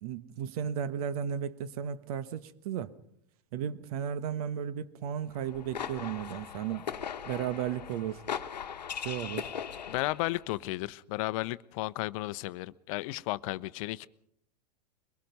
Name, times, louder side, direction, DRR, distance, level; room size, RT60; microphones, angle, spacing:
voice 1, 0.0-2.9 3.5-6.9 7.2-8.2 8.9-9.5, right 9 dB, 60° right, 1.3 m, -34 dB
sound 1, 5.3-10.4, left 8 dB, 85° left, 1.1 m, -39 dB
voice 2, 9.9-14.1, left 19 dB, 55° left, 0.7 m, -34 dB
23.0 x 21.5 x 5.4 m
hypercardioid pair, 100°, 21 cm